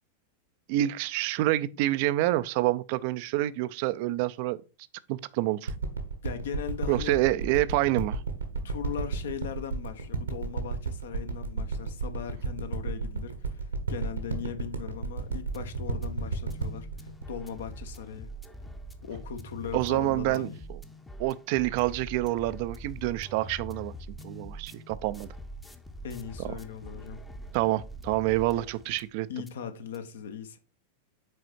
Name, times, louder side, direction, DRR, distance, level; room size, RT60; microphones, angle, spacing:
voice 1, 0.7-4.6 5.1-5.7 6.9-8.2 19.7-20.8 21.2-23.9 24.2-25.3 27.5-29.3, right 16 dB, 45° right, 0.4 m, -27 dB
sound 1, 5.7-18.4 19.0-19.1, right 4 dB, 75° right, 1.2 m, -32 dB
voice 2, 6.2-7.2 8.6-16.9 17.3-18.3 19.0-20.6 26.0-27.2 29.3-30.6, left 7 dB, 60° left, 0.9 m, -38 dB
sound 2, 15.0-29.1 29.5-29.6 29.9-30.0, right 1 dB, 5° left, 0.7 m, -44 dB
6.4 x 4.2 x 4.4 m
figure-of-eight pair, 90°, 0 cm